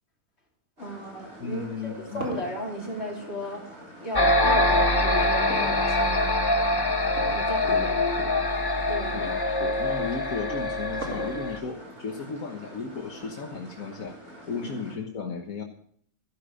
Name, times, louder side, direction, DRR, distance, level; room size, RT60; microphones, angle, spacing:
voice 1, 0.8-3.6 4.0-6.3 7.3-7.9 8.9-9.3, left 1 dB, 50° left, -2 dB, 3.7 m, -34 dB
sound 1, 0.8-14.9, equal, 85° right, 5.5 m, -47 dB
voice 2, 1.4-2.3 7.6-8.4 9.1-14.2 14.5-15.6, left 5 dB, 80° left, 2 dB, 1.7 m, -35 dB
sound 2, 1.7-4.1 5.5-6.4 7.1-7.5 7.9-8.0 8.7-8.8 10.2-11.7, right 1 dB, 60° right, 2.8 m, -38 dB
sound 3, 4.1-11.6, left 1 dB, 20° left, 0.7 m, -24 dB
14.0 x 11.5 x 4.9 m, 0.64 s
omnidirectional pair, 1.4 m